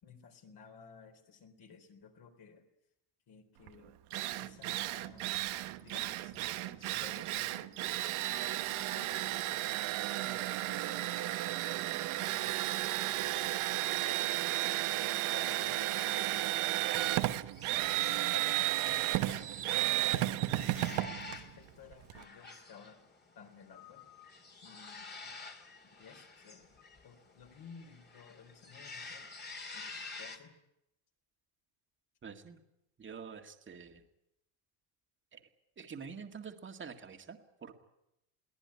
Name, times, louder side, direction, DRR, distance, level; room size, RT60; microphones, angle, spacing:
voice 1, 0.0-2.6 3.3-3.9 4.4-5.3 5.8-7.7 8.3-9.6 10.2-16.5 17.0-17.2 17.6-23.0 23.4-24.0 24.6-25.4 25.8-26.7 27.0-29.3 29.7-30.5, left 5 dB, 50° left, 4 dB, 3.8 m, -55 dB
Drill, 3.7-3.8 4.1-22.2, right 16 dB, 75° right, 1.3 m, -33 dB
parrot jungle, 16.3-30.4, left 3 dB, 20° left, 2.4 m, -50 dB
voice 2, 32.2-32.6 33.0-34.0 35.3-35.4 35.8-37.7, right 6 dB, 25° right, 5 dB, 2.0 m, -47 dB
22.5 x 18.0 x 9.6 m, 0.86 s
cardioid pair, 155°, 50 cm